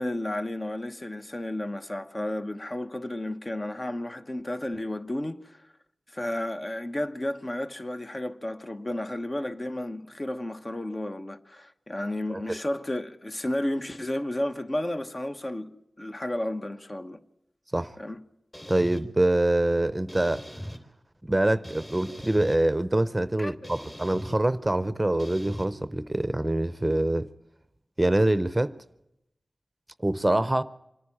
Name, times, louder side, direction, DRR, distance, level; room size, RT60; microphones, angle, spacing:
voice 1, 0.0-5.6 6.1-17.2 18.0-18.2 23.4-23.7, left 1 dB, 40° left, 1.1 m, -32 dB
sound 1, 18.5-19.0 20.1-20.8 21.6-22.6 23.6-24.4 25.2-25.7, equal, 20° left, 3.0 m, -40 dB
voice 2, 18.7-20.4 21.2-27.3 28.0-28.7 30.0-30.6, right 1 dB, 20° right, 0.7 m, -25 dB
25.5 x 10.0 x 10.0 m
cardioid pair, 40°, 0 cm